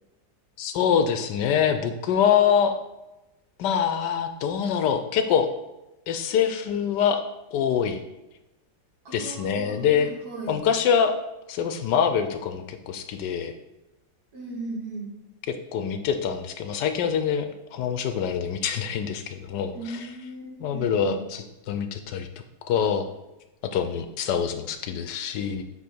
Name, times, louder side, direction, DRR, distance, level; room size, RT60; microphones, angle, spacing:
voice 1, 0.6-2.7 3.6-5.5 6.1-7.2 7.5-8.0 9.1-10.1 10.5-11.1 11.5-13.5 15.7-20.1 20.6-22.3 22.7-23.1 23.7-25.6, left 7 dB, 75° left, 8 dB, 1.2 m, -25 dB
voice 2, 9.0-10.6 14.3-15.1 19.7-21.2, right 2 dB, 60° right, -4 dB, 2.3 m, -37 dB
7.6 x 3.3 x 4.5 m, 0.99 s
omnidirectional pair, 1.9 m